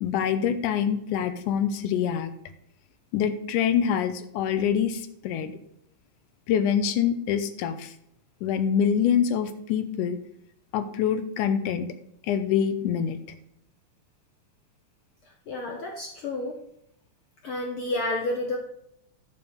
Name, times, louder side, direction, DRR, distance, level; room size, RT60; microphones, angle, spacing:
voice 1, 0.0-2.3 3.1-5.6 6.5-7.9 8.4-10.2 10.7-11.9 12.3-13.2, left 8 dB, 85° left, 10 dB, 2.2 m, -25 dB
voice 2, 15.5-16.6 17.4-18.6, left 2 dB, 65° left, 2 dB, 1.3 m, -30 dB
9.4 x 7.1 x 5.1 m, 0.73 s
omnidirectional pair, 3.7 m